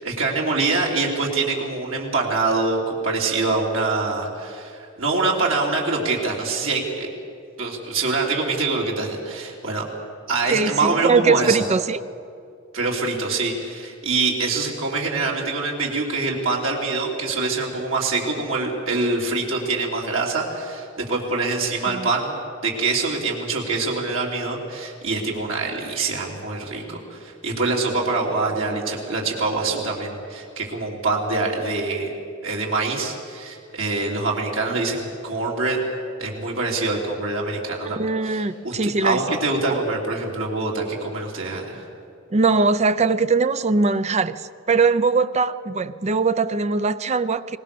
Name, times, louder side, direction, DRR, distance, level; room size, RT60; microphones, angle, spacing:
voice 1, 0.0-7.1 7.6-9.8 10.3-11.6 12.7-32.1 32.4-35.8 36.2-41.8, right 3 dB, 70° right, -2 dB, 3.3 m, -25 dB
voice 2, 10.5-12.0 21.9-22.1 37.8-39.2 39.7-39.8 42.3-47.6, right 4 dB, 35° right, 13 dB, 0.5 m, -21 dB
23.0 x 20.0 x 6.9 m, 2.4 s
head